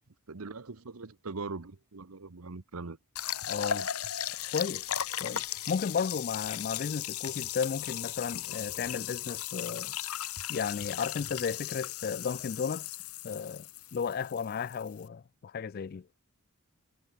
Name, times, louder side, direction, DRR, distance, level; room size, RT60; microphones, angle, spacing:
voice 1, 0.3-3.0, right 3 dB, 80° right, 1.0 m, -41 dB
sound 1, 3.2-15.1, left 11 dB, 85° left, 1.3 m, -37 dB
voice 2, 3.5-3.9 4.5-4.9 5.2-9.9 10.5-13.0 13.2-16.1, left 6 dB, 40° left, 0.3 m, -34 dB
head